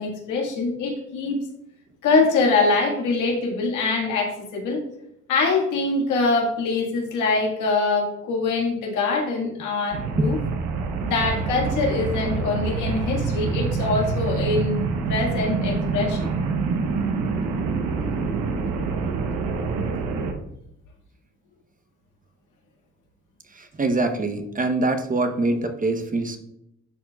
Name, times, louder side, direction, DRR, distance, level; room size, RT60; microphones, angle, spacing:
voice 1, 0.0-1.4 2.0-4.8 5.3-10.4 11.0-14.8 15.1-16.3, left 3 dB, 90° left, 0 dB, 1.8 m, -23 dB
sound 1, 9.9-20.3, right 4 dB, 85° right, 1.0 m, -26 dB
voice 2, 23.5-26.4, right 2 dB, 30° right, 7 dB, 0.8 m, -24 dB
11.0 x 4.5 x 2.3 m, 0.80 s
cardioid pair, 90°, 30 cm